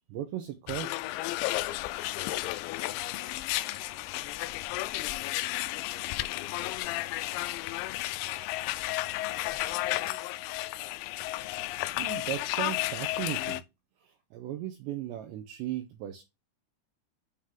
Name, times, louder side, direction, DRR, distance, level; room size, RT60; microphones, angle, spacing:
voice 1, 0.1-1.0 12.0-13.6 14.0-16.2, right 12 dB, 85° right, 2.5 m, -37 dB
sound 1, 0.7-13.6, left 18 dB, 85° left, 3.2 m, -33 dB
voice 2, 2.9-4.4 5.2-8.5 9.0-10.6, left 5 dB, 60° left, 2.3 m, -54 dB
9.1 x 3.7 x 3.6 m
omnidirectional pair, 5.9 m